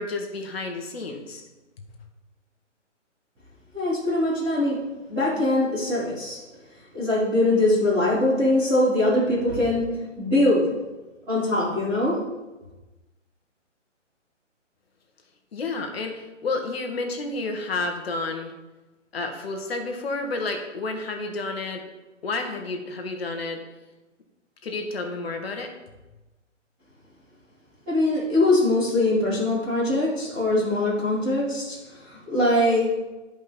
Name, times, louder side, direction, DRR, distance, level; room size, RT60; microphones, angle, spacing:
voice 1, 0.0-1.4 15.5-18.5 19.1-21.8 22.2-23.6 24.6-25.7, left 3 dB, 50° left, 4 dB, 1.8 m, -30 dB
voice 2, 3.7-4.8 5.1-6.4 6.9-9.9 10.2-10.6 11.3-12.2 27.9-32.9, left 1 dB, ahead, -18 dB, 0.4 m, -22 dB
11.0 x 5.4 x 5.4 m, 1.1 s
figure-of-eight pair, 145°, 38 cm